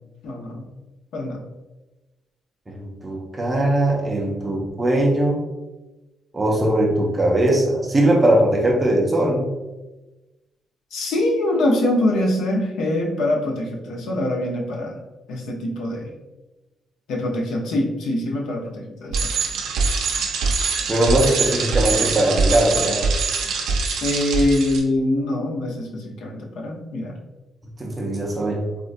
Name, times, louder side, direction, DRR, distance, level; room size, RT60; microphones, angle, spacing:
voice 1, 0.2-0.7 1.1-1.4 10.9-15.0 15.3-16.1 17.1-19.3 24.0-27.2, left 1 dB, 90° left, 1 dB, 0.6 m, -24 dB
voice 2, 2.7-5.4 6.3-9.5 20.9-23.0 27.8-28.6, right 1 dB, 15° right, -1 dB, 0.4 m, -20 dB
Bicycle, 19.1-24.8, right 4 dB, 80° right, 0.4 m, -23 dB
3.6 x 2.1 x 2.5 m, 1.1 s
cardioid pair, 175°, 0 cm